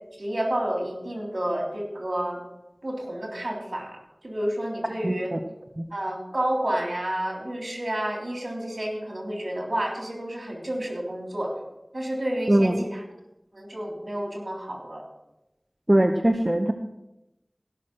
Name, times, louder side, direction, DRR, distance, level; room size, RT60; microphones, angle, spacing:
voice 1, 0.2-2.4 2.8-4.0 4.2-5.3 5.9-11.5 11.9-13.0 13.5-15.0, right 1 dB, 70° right, 0 dB, 3.4 m, -30 dB
voice 2, 5.0-5.4 5.8-5.9 12.5-12.8 15.9-16.7, right 1 dB, 35° right, 5 dB, 0.8 m, -21 dB
16.5 x 6.2 x 6.1 m, 0.92 s
wide cardioid pair, 45°, 0 cm